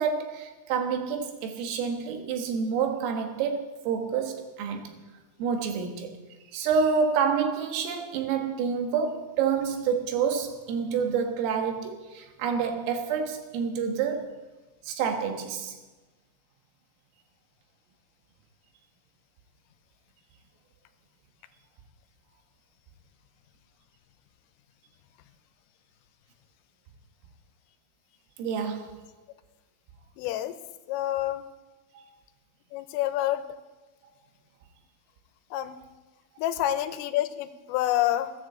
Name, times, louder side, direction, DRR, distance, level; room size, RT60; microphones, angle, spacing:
voice 1, 0.0-5.0 5.4-6.2 6.5-14.3 14.9-15.8 28.4-29.0 32.0-32.1, right 6 dB, 85° right, 5 dB, 4.3 m, -28 dB
voice 2, 30.2-30.6 30.9-31.5 32.7-33.4 35.5-35.8 36.4-38.3, left 13 dB, 85° left, 11 dB, 3.5 m, -27 dB
16.0 x 10.5 x 7.8 m, 1.2 s
omnidirectional pair, 5.8 m